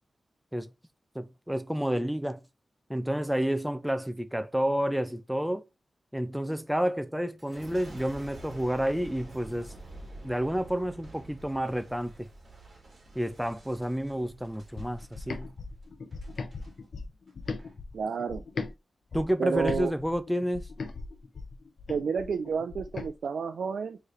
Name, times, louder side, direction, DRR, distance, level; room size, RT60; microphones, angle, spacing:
voice 1, 1.1-2.4 2.9-5.6 6.1-9.7 10.2-12.3 13.2-15.5 19.1-20.7, equal, 5° right, 0.4 m, -30 dB
Boom, 7.4-16.7 17.3-17.7, right 2 dB, 45° right, 2.0 m, -48 dB
sound 1, 14.8-18.7 19.1-23.1, left 4 dB, 60° left, 0.6 m, -38 dB
voice 2, 17.9-18.4 19.4-19.9 21.9-24.0, right 6 dB, 90° right, 0.4 m, -30 dB
4.6 x 3.1 x 3.1 m
wide cardioid pair, 135°, 0 cm